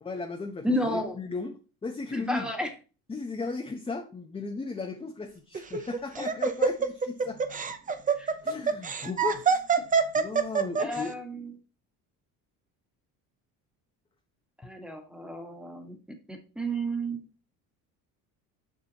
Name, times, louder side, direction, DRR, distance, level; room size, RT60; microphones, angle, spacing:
voice 1, 0.0-2.5 3.1-8.0 8.4-9.6 10.1-11.1, left 4 dB, 15° left, 3 dB, 0.8 m, -36 dB
voice 2, 0.6-1.2 2.1-2.7 6.2-6.3 8.2-8.3 10.8-11.5 14.6-16.0 16.3-17.2, right 1 dB, ahead, 4 dB, 1.5 m, -32 dB
Laughter, 5.5-11.0, right 5 dB, 20° right, 0.7 m, -25 dB
7.1 x 6.1 x 2.9 m, 0.33 s
cardioid pair, 115°, 37 cm